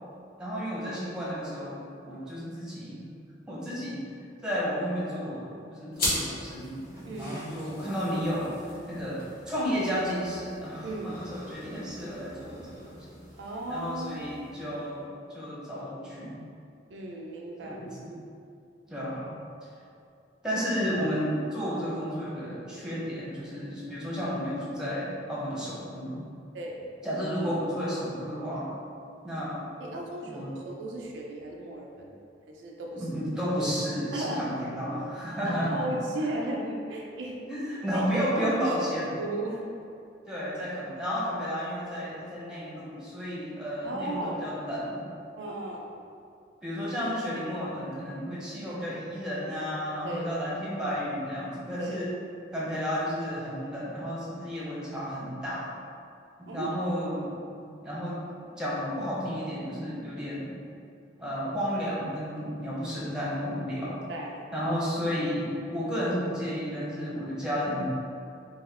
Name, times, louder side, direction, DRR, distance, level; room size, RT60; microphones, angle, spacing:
voice 1, 0.4-3.0 3.5-4.0 4.4-13.1 13.7-15.0 15.3-16.4 17.6-18.2 18.9-19.3 20.4-26.2 27.0-28.7 29.2-29.6 30.2-30.5 33.0-35.8 37.5-39.1 40.3-45.1 46.6-52.1 52.5-55.7 56.4-58.2 58.6-60.5 61.2-64.0 64.5-67.8, equal, 5° right, -8 dB, 0.9 m, -32 dB
Lightin' a joint, 5.9-14.9, left 1 dB, 50° left, 1.2 m, -39 dB
voice 2, 7.1-7.6 10.8-11.2 13.4-14.2 16.9-17.8 20.5-20.6 26.5-26.8 29.8-32.1 32.5-33.1 34.1-34.5 35.5-37.4 37.9-38.0 38.3-39.6 43.8-44.4 45.4-45.9 50.0-50.3 51.8-52.0 56.5-56.7 64.1-64.4, right 1 dB, 75° right, -1 dB, 0.5 m, -35 dB
4.2 x 2.4 x 3.6 m, 2.5 s
head